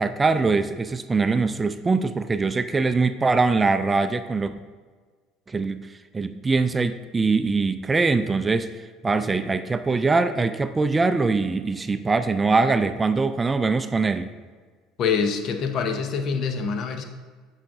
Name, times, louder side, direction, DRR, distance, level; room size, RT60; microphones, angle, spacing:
voice 1, 0.0-4.5 5.5-5.9 6.1-14.3, right 4 dB, 20° right, 11 dB, 0.3 m, -22 dB
voice 2, 15.0-17.0, left 5 dB, 55° left, 7 dB, 0.8 m, -25 dB
8.3 x 5.8 x 2.6 m, 1.5 s
supercardioid pair, 85°, 0 cm